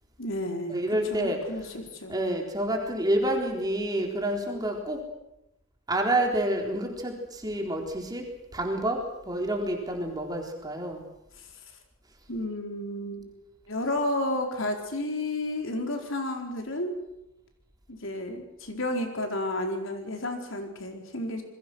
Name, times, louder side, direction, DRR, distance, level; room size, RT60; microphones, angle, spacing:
voice 1, 0.2-0.8 1.1-2.2 11.4-11.5 12.3-13.3 13.7-16.9 17.9-21.4, left 1 dB, 70° left, 3 dB, 4.3 m, -31 dB
voice 2, 0.7-1.4 2.1-5.0 5.9-8.2 8.5-11.0, right 1 dB, 20° right, 2 dB, 4.0 m, -28 dB
28.0 x 21.5 x 6.3 m, 0.87 s
head